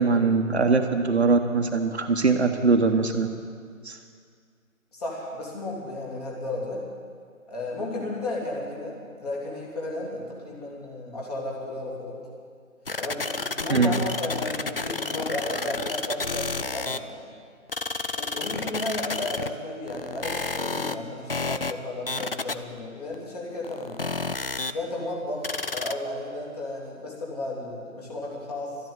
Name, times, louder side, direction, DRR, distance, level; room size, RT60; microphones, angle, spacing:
voice 1, 0.0-3.3 3.8-4.0 13.7-13.9, right 4 dB, 50° right, 5 dB, 1.1 m, -22 dB
voice 2, 4.9-6.8 7.5-12.2 13.0-17.3 18.1-23.9 24.7-28.8, left 2 dB, 30° left, -4 dB, 3.1 m, -33 dB
sound 1, 12.9-17.1 17.7-19.5 19.9-20.9 21.3-21.7 22.1-22.8 23.1-23.2 23.6-24.7 25.4-25.9, left 3 dB, 45° left, 0.5 m, -30 dB
13.0 x 10.5 x 9.4 m, 2.1 s
figure-of-eight pair, 160°, 42 cm